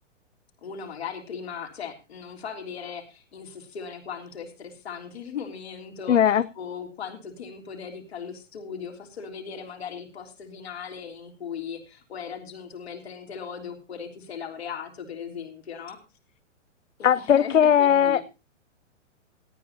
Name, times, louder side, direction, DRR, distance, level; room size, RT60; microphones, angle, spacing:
voice 1, 0.6-6.2 6.5-16.0 17.0-18.2, left 7 dB, 55° left, 3.4 m, -38 dB
voice 2, 6.1-6.4 17.0-18.3, left 9 dB, 75° left, 0.6 m, -19 dB
18.0 x 13.5 x 2.7 m
figure-of-eight pair, 115°, 37 cm